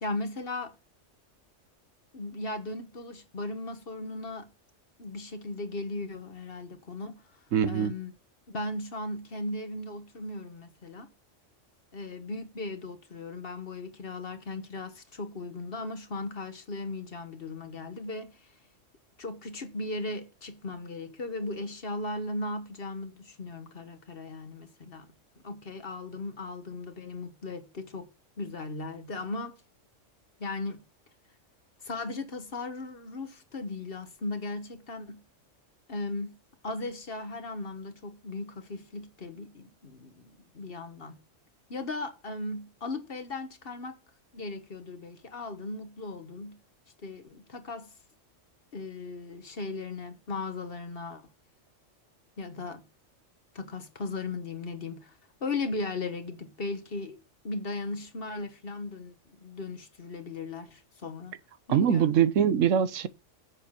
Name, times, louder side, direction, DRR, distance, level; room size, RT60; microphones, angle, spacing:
voice 1, 0.0-0.7 2.1-4.5 5.0-7.2 7.6-8.1 8.5-11.1 11.9-18.5 19.2-25.1 25.4-28.1 28.4-29.6 30.4-30.8 31.8-35.2 35.9-36.4 36.6-41.2 41.7-43.9 44.3-46.6 47.0-47.9 48.7-51.2 52.4-52.8 53.5-55.1 55.4-57.2 57.4-61.3 61.7-62.1, left 2 dB, 50° left, 1.5 m, -37 dB
voice 2, 7.5-7.9 61.7-63.1, right 8 dB, 85° right, 1.2 m, -23 dB
8.1 x 7.0 x 5.8 m
omnidirectional pair, 1.3 m